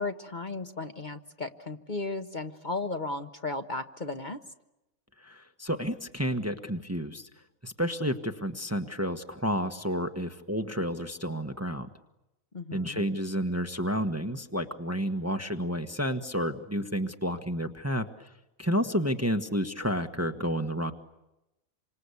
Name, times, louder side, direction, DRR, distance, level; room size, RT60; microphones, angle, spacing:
voice 1, 0.0-4.4 12.5-13.1, left 3 dB, 35° left, 6 dB, 1.3 m, -35 dB
voice 2, 5.2-7.3 7.6-11.9 12.7-18.3 18.6-20.9, equal, 10° right, 7 dB, 1.2 m, -30 dB
28.0 x 25.5 x 8.4 m, 0.94 s
omnidirectional pair, 1.4 m